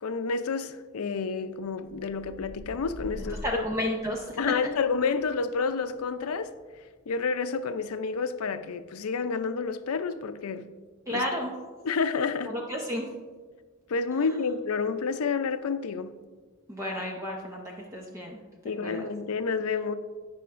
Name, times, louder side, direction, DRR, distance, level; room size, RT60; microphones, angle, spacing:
voice 1, 0.0-3.4 4.4-6.5 7.1-10.7 11.1-11.3 11.8-12.5 13.9-16.1 18.6-19.9, left 5 dB, 85° left, 0.5 m, -29 dB
sound 1, 1.6-9.6 10.1-10.5, equal, 25° left, 2.6 m, -47 dB
voice 2, 3.1-4.5 11.1-11.5 12.5-13.1 14.2-14.3 16.7-18.4 18.8-19.0, left 1 dB, 15° right, 0.7 m, -32 dB
16.5 x 5.7 x 2.5 m
head